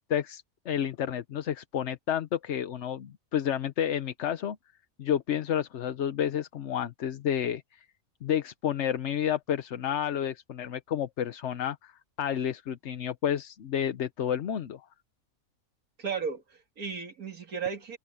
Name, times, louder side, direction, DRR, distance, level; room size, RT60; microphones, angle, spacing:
voice 1, 0.1-4.6 5.0-7.8 8.2-11.9 12.2-14.8, left 9 dB, 60° left, 1.0 m, -30 dB
voice 2, 16.0-18.0, right 6 dB, 85° right, 2.7 m, -35 dB
open air
omnidirectional pair, 1.5 m